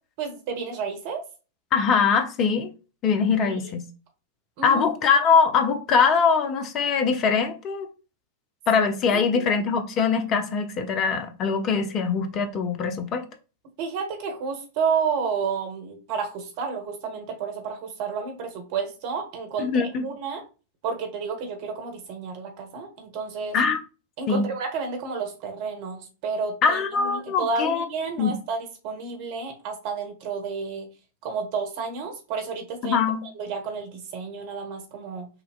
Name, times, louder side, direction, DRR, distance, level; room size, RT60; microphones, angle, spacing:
voice 1, 0.2-1.2 3.6-3.7 4.6-4.8 9.1-9.5 13.8-20.4 20.8-23.6 24.2-30.9 31.2-35.3, right 5 dB, 45° right, 1.3 m, -31 dB
voice 2, 1.7-2.7 3.0-3.8 4.6-7.9 8.7-13.2 19.6-20.0 23.5-23.8 24.3-24.5 26.6-27.8 28.2-28.3 32.8-33.2, left 5 dB, 35° left, 0.8 m, -22 dB
5.9 x 2.8 x 2.4 m
figure-of-eight pair, 90°, 0 cm